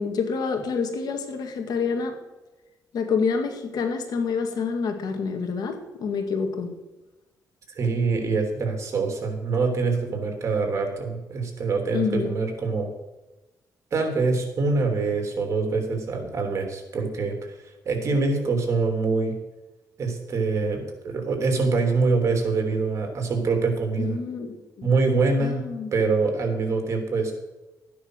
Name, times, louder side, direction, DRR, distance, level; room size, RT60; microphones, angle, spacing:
voice 1, 0.0-2.2 2.9-6.7 11.9-12.3 24.0-24.9 25.4-25.9, left 5 dB, 75° left, 5 dB, 2.1 m, -27 dB
voice 2, 7.8-12.9 13.9-17.5 17.8-19.4 20.0-24.2 24.8-25.6 25.9-27.3, right 4 dB, 45° right, 4 dB, 3.2 m, -24 dB
13.5 x 9.5 x 6.4 m, 1.1 s
cardioid pair, 120°, 7 cm